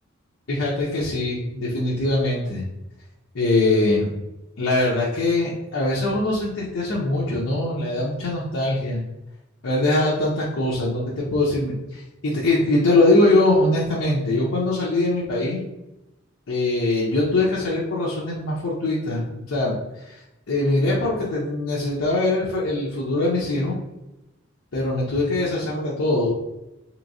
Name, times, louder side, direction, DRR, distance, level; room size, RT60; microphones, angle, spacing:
voice 1, 0.5-2.6 3.3-4.1 4.6-9.0 9.6-15.7 16.5-19.2 19.5-19.8 20.1-20.2 20.5-23.8 24.7-26.3, left 2 dB, 80° left, -5 dB, 0.6 m, -22 dB
3.4 x 2.9 x 2.6 m, 0.94 s
head